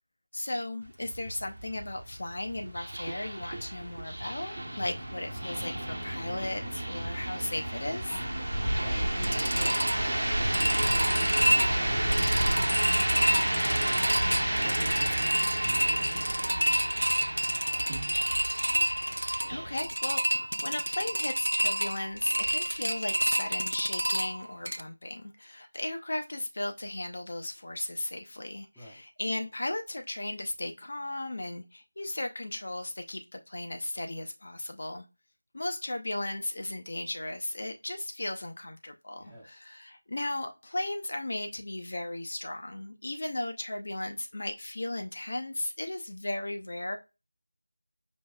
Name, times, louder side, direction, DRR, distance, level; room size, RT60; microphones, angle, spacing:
voice 1, 0.3-8.2 19.5-35.0 35.5-47.0, left 1 dB, 50° left, 5 dB, 0.6 m, -36 dB
sound 1, 0.8-19.8, right 1 dB, 55° right, 1.0 m, -32 dB
sound 2, 2.6-13.9 16.7-16.8 17.2-18.9 19.5-19.9, right 2 dB, 30° right, 0.6 m, -51 dB
sound 3, 8.1-24.8, equal, 75° right, 0.4 m, -29 dB
voice 2, 8.4-12.6 13.0-18.3 28.7-29.0 39.1-39.6, equal, 5° left, -11 dB, 0.7 m, -48 dB
5.2 x 3.0 x 2.3 m, 0.26 s
figure-of-eight pair, 165°, 0 cm